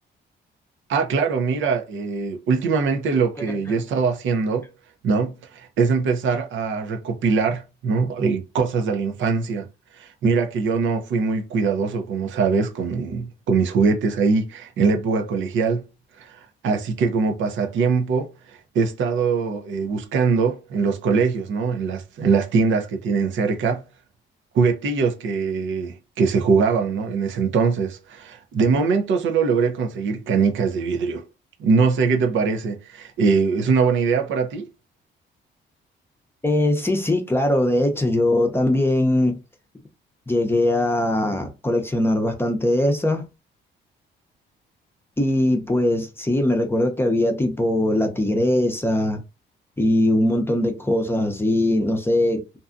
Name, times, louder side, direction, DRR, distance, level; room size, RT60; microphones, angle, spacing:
voice 1, 0.9-4.7 5.0-9.7 9.9-15.9 16.2-23.8 24.5-31.2 31.6-34.7, right 5 dB, 75° right, 0.7 m, -22 dB
voice 2, 36.4-39.4 40.3-43.2 45.2-49.2 49.8-52.4, left 1 dB, 10° left, 0.7 m, -21 dB
2.6 x 2.3 x 2.5 m
cardioid pair, 90°, 20 cm